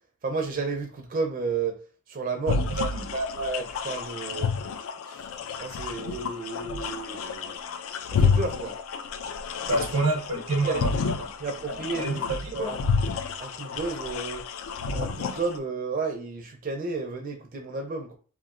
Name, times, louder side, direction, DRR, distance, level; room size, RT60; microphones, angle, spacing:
voice 1, 0.2-1.8 2.1-2.6 3.1-4.5 5.1-5.2 5.6-7.6 8.1-8.7 9.8-9.9 10.6-10.8 11.4-12.8 13.4-14.4 14.9-18.2, right 4 dB, 40° right, 0.4 m, -32 dB
sound 1, 2.5-15.6, left 5 dB, 70° left, 0.3 m, -30 dB
voice 2, 2.5-3.1 9.7-11.3 11.7-12.8, right 2 dB, 85° right, 0.7 m, -29 dB
2.9 x 2.4 x 2.4 m
head